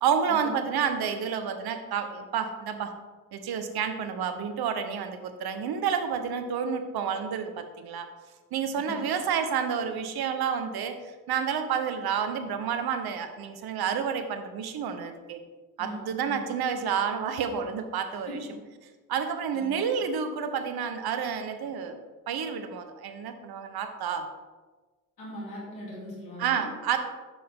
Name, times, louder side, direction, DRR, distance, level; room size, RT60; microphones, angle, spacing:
voice 1, 0.0-2.9 3.3-8.1 8.5-15.4 15.8-18.4 19.1-22.0 22.3-24.3 26.4-27.0, right 7 dB, 50° right, 8 dB, 1.0 m, -30 dB
voice 2, 8.8-9.2 15.8-16.4 18.3-18.4 19.5-19.8 25.2-26.6, equal, 85° left, -6 dB, 2.7 m, -40 dB
8.4 x 6.6 x 3.6 m, 1.3 s
hypercardioid pair, 50°, 47 cm